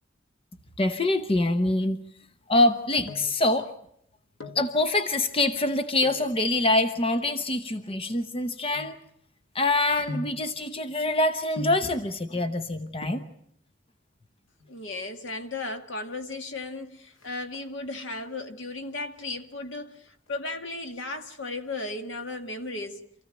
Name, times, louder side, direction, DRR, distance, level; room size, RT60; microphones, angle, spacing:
voice 1, 0.8-2.0 2.5-3.7 4.5-9.0 9.5-13.2, left 2 dB, 30° left, 0.9 m, -25 dB
sound 1, 2.9-3.5 4.2-4.7 6.0-6.3 7.1-9.5 10.1-10.5 11.6-12.0 12.7-12.8 13.0-13.4 14.5-15.0 15.3-15.4 15.6-15.8 16.2-16.6 16.9-17.9 18.3-18.8 19.1-20.3 20.6-20.7, left 2 dB, 85° left, 2.2 m, -40 dB
voice 2, 14.7-23.0, left 2 dB, 70° left, 1.9 m, -35 dB
27.5 x 15.5 x 9.0 m
head